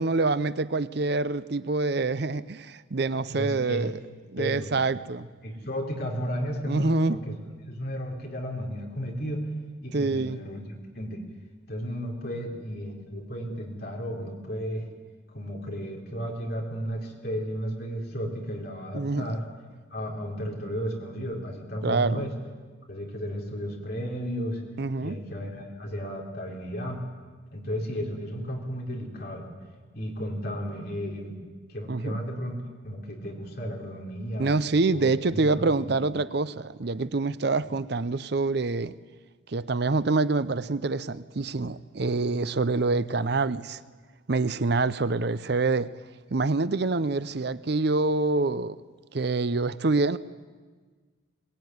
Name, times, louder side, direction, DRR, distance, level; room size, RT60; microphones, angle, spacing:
voice 1, 0.0-3.9 4.3-5.3 6.7-7.2 9.9-10.4 18.9-19.3 21.8-22.2 24.8-25.2 31.9-32.2 34.4-38.9 39.5-43.8 44.3-45.9 46.3-48.8 49.1-50.2, right 3 dB, 55° right, 0.6 m, -26 dB
voice 2, 3.3-3.9 4.4-4.7 5.4-7.3 7.7-9.5 9.8-11.2 11.7-14.9 15.3-19.4 19.9-22.3 22.9-24.6 25.0-27.0 27.5-29.5 29.9-31.4 31.7-34.5 34.9-35.1 35.3-35.9 37.6-37.7, equal, 50° left, 4.3 m, -33 dB
22.0 x 19.0 x 9.5 m
head